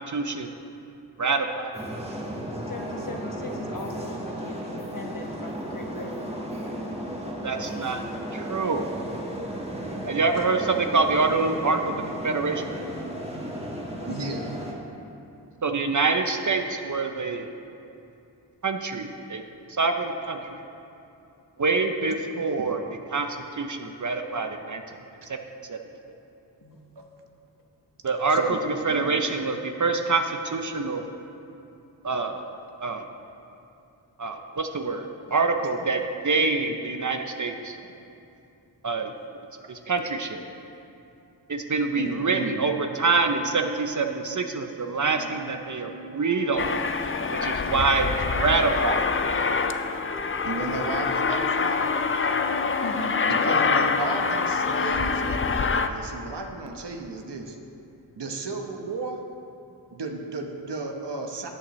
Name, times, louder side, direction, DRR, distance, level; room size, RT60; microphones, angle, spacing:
voice 1, 0.1-0.5 1.2-1.7 7.4-8.0 8.3-8.9 10.0-12.6 15.6-17.5 18.6-19.4 19.7-20.4 21.6-22.8 23.1-24.8 25.3-25.4 25.7-25.8 28.0-31.0 32.0-32.5 32.8-33.0 34.2-37.8 38.8-39.1 39.7-40.4 41.5-46.8 47.4-49.1, right 4 dB, 45° right, 5 dB, 0.7 m, -26 dB
sound 1, 1.7-14.7, equal, 15° right, 1.6 m, -34 dB
voice 2, 2.7-6.2 14.1-14.2 26.6-26.8 52.8-53.2, left 2 dB, 45° left, 1 dB, 1.3 m, -38 dB
voice 3, 14.1-14.5 22.6-22.7 27.0-27.1 28.3-28.6 28.9-29.2 35.3-35.5 36.0-36.1 39.0-39.1 41.9-42.6 47.2-47.3 50.4-51.9 53.3-57.6 58.2-59.2 59.9-61.5, right 3 dB, 65° right, 3 dB, 1.1 m, -34 dB
Wind instrument woodwind instrument, 45.1-53.7, equal, 80° left, 1.2 m, -44 dB
Aircraft, 46.6-55.9, left 5 dB, 30° left, 0.5 m, -25 dB
13.0 x 8.6 x 3.1 m, 2.7 s
cardioid pair, 50°, 44 cm